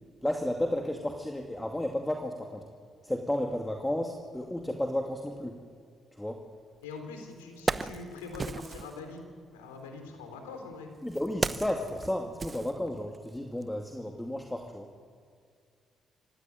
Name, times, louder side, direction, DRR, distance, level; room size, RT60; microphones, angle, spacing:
voice 1, 0.2-2.7 3.0-5.6 6.1-6.4 11.0-14.9, left 1 dB, 10° left, 2 dB, 2.4 m, -32 dB
voice 2, 6.8-9.2 9.5-10.9, left 4 dB, 85° left, 5 dB, 3.4 m, -43 dB
Wood, 6.8-6.9 7.4-9.0 10.0-13.3 13.6-13.8, right 4 dB, 40° right, 0.9 m, -35 dB
26.0 x 16.0 x 9.3 m, 2.2 s
hypercardioid pair, 45°, 0 cm